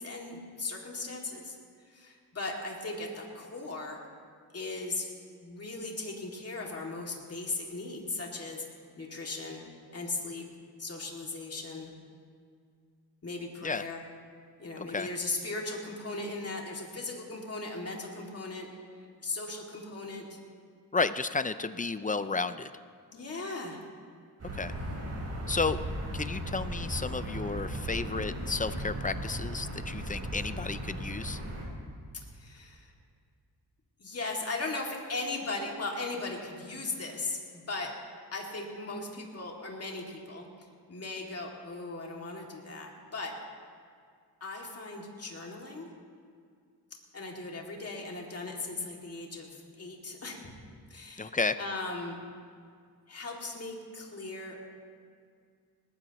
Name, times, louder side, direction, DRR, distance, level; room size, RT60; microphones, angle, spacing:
voice 1, 0.0-1.6 1.9-4.0 4.5-8.7 9.0-9.6 9.9-10.5 10.8-11.9 13.2-14.0 14.6-18.7 19.2-20.4 23.1-23.8 32.3-32.9 34.0-37.9 38.3-43.3 44.4-45.9 47.1-50.5 50.9-52.2 53.1-54.6, left 3 dB, 35° left, -1 dB, 2.5 m, -38 dB
voice 2, 20.9-22.7 24.5-24.7 25.5-25.8 26.1-31.4 51.2-51.6, left 4 dB, 20° left, 12 dB, 0.4 m, -32 dB
sound 1, 24.4-31.6, right 1 dB, 40° right, 4.8 m, -36 dB
20.5 x 19.0 x 3.0 m, 2.2 s
wide cardioid pair, 125°, 40 cm